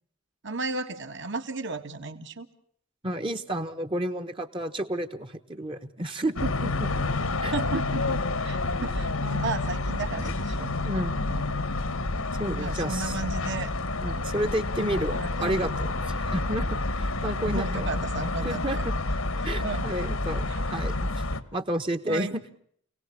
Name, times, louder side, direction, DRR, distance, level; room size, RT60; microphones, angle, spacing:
voice 1, 0.4-2.5 7.5-10.7 11.3-11.6 12.6-13.7 15.2-15.8 16.4-16.6 17.4-18.8 19.6-19.9 20.5-20.6 21.4-21.5 22.1-22.4, right 3 dB, 55° right, 7 dB, 1.8 m, -34 dB
voice 2, 3.0-6.9 7.4-7.5 10.8-11.3 12.4-13.2 14.0-17.9 18.4-18.9 19.4-21.1 21.5-22.4, right 1 dB, 25° right, 7 dB, 1.2 m, -31 dB
sound 1, 6.4-21.4, left 2 dB, 70° left, 1.5 m, -29 dB
28.0 x 18.0 x 8.7 m, 0.64 s
head